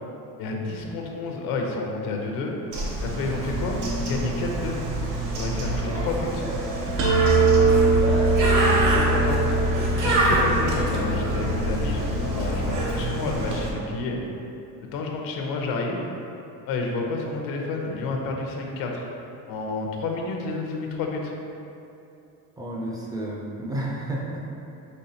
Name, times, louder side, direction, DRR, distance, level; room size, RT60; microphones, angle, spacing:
voice 1, 0.4-2.6 3.0-4.8 5.3-6.4 7.1-7.8 8.6-9.4 10.0-14.2 14.9-16.1 16.7-19.1 19.5-21.3, left 3 dB, 75° left, 1 dB, 0.7 m, -30 dB
Bird, 2.7-13.7, right 1 dB, 60° right, 0.9 m, -26 dB
sound 1, 7.0-12.8, right 2 dB, 90° right, 0.8 m, -23 dB
voice 2, 22.6-24.4, right 1 dB, 10° right, -3 dB, 0.3 m, -31 dB
5.5 x 3.3 x 2.8 m, 2.7 s
cardioid pair, 160°, 35 cm